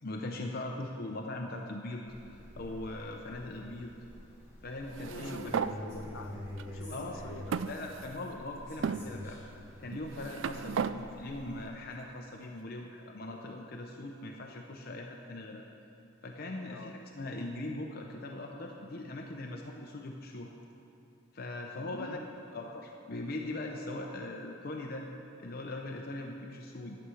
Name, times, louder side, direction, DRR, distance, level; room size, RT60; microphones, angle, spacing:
voice 1, 0.0-4.0 4.6-5.5 6.9-7.2 7.7-9.4 9.8-15.6 16.2-20.5 21.3-22.2 22.5-25.0 25.4-27.0, left 2 dB, 50° left, 1 dB, 0.7 m, -40 dB
sound 1, 2.1-11.6, equal, 15° right, 2.2 m, -47 dB
sound 2, 4.9-5.7 6.6-6.7 7.5-8.3 8.8-9.0 9.9-11.0, right 7 dB, 65° right, 0.3 m, -34 dB
voice 2, 5.0-7.7 10.5-10.7 16.7-17.0 21.8-22.2 24.0-24.1, left 2 dB, 75° left, 5 dB, 0.8 m, -47 dB
11.5 x 7.0 x 6.3 m, 2.9 s
head